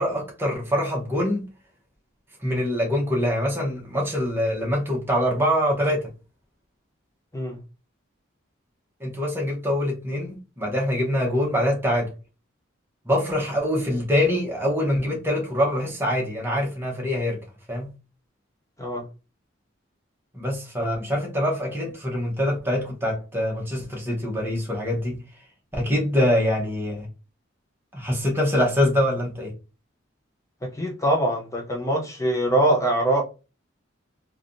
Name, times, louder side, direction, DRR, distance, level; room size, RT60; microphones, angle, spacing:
voice 1, 0.0-1.4 2.4-6.1 9.0-12.1 13.1-17.4 17.7-17.9 20.3-25.2 25.7-27.1 27.9-29.5, left 1 dB, 10° right, 0.9 m, -24 dB
voice 2, 30.6-33.2, right 1 dB, 15° left, 0.5 m, -23 dB
3.3 x 2.3 x 2.6 m
head